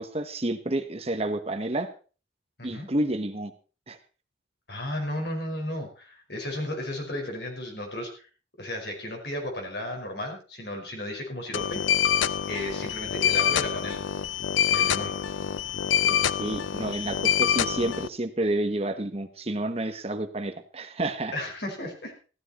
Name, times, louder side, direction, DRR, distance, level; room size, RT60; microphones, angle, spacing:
voice 1, 0.0-1.9 2.6-3.5 3.9-4.0 16.0-21.3, right 1 dB, 30° right, 7 dB, 1.1 m, -30 dB
voice 2, 4.7-8.3 8.6-11.8 12.5-14.0 14.6-15.1 21.3-22.1, left 1 dB, 60° left, 2 dB, 5.1 m, -34 dB
sound 1, 11.5-18.1, left 9 dB, 85° left, 0.6 m, -26 dB
15.5 x 12.5 x 4.2 m, 0.36 s
head